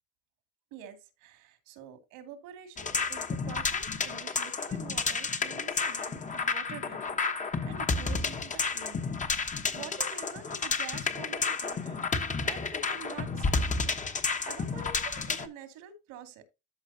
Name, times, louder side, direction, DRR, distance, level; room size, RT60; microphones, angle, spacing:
voice 1, 0.7-9.1 9.4-13.6 14.5-16.4, right 7 dB, 80° right, 2.4 m, -47 dB
sound 1, 2.8-15.5, left 4 dB, 25° left, 1.1 m, -31 dB
13.5 x 4.9 x 2.8 m
cardioid pair, 105°, 31 cm